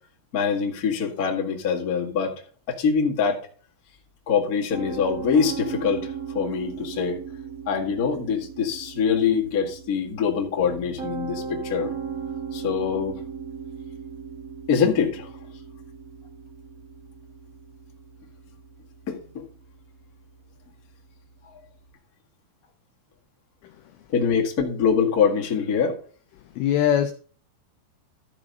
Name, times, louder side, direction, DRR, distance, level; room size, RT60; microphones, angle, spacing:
voice 1, 0.3-2.3 2.7-3.5 4.3-7.2 7.7-11.9 12.5-13.2 14.7-15.3 19.1-19.5 24.1-26.0, left 6 dB, 60° left, -1 dB, 0.9 m, -24 dB
Piano, 4.7-21.8, right 6 dB, 60° right, 0.8 m, -38 dB
voice 2, 26.6-27.1, left 10 dB, 85° left, 8 dB, 2.2 m, -21 dB
13.5 x 4.9 x 5.3 m, 0.43 s
omnidirectional pair, 5.2 m